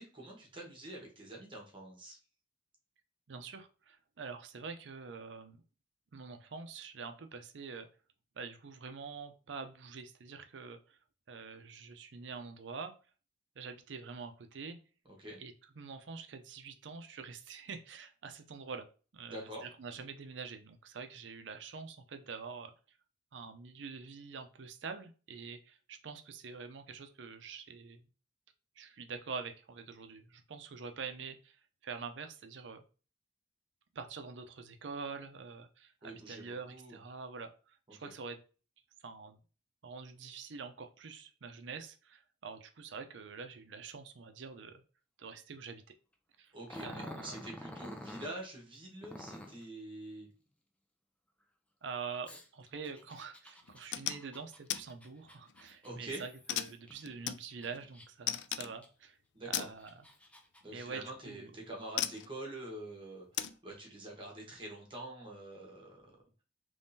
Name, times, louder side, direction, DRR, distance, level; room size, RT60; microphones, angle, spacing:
voice 1, 0.0-2.2 15.2-15.4 19.3-19.6 36.0-37.0 38.0-38.1 46.5-50.3 55.8-56.2 59.3-59.7 60.6-66.2, right 1 dB, 30° right, -1 dB, 1.1 m, -46 dB
voice 2, 3.3-5.6 6.1-7.9 8.4-11.0 11.3-12.9 13.6-14.8 15.4-18.9 19.1-22.7 23.3-28.0 28.8-31.6 31.8-32.8 33.9-38.4 39.0-39.4 39.8-44.8 45.2-45.8 46.4-46.5 46.8-47.3 51.8-59.2 59.4-60.1 60.7-61.5, right 5 dB, 90° right, 8 dB, 0.6 m, -45 dB
Growling, 46.7-48.4 49.0-49.6 52.3-57.0 57.5-58.3 58.8-58.9 59.6-60.6, left 1 dB, 5° left, 0.5 m, -49 dB
sound 1, 53.7-54.2 54.7-54.9 55.3-55.7 56.5-57.8 58.3-58.8 59.5-59.8 61.0-61.2 62.0-62.3 63.3-63.6, left 11 dB, 70° left, 0.3 m, -36 dB
3.6 x 3.1 x 2.7 m, 0.36 s
head